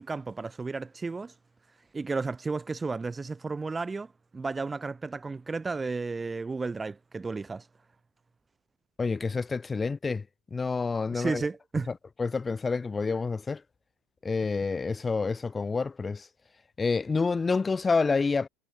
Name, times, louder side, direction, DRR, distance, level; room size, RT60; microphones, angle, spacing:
voice 1, 0.0-1.3 1.9-7.6 11.1-11.9, right 4 dB, 10° right, 2.5 m, -33 dB
voice 2, 9.0-10.2 10.5-11.4 12.2-13.6 14.2-16.3 16.8-18.5, left 4 dB, 10° left, 2.3 m, -28 dB
supercardioid pair, 175°, 0 cm